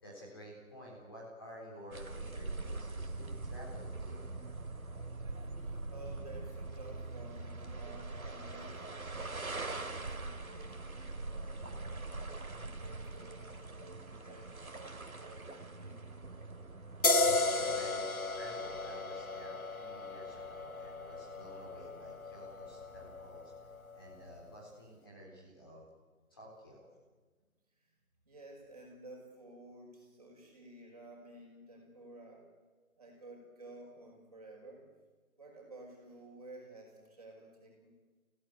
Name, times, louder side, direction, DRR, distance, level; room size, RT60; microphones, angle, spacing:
voice 1, 0.0-4.2 17.2-23.5 23.9-25.8 26.3-26.9, equal, 15° left, -5 dB, 3.9 m, -52 dB
sound 1, 1.9-17.8, right 3 dB, 75° right, 2.7 m, -43 dB
voice 2, 5.6-12.1 12.6-16.1 28.3-32.5 33.0-34.9 35.4-37.9, right 2 dB, 25° right, 0 dB, 5.6 m, -53 dB
sound 2, 17.0-24.3, left 3 dB, 75° left, 2.0 m, -35 dB
29.0 x 17.0 x 9.6 m, 1.4 s
figure-of-eight pair, 175°, 43 cm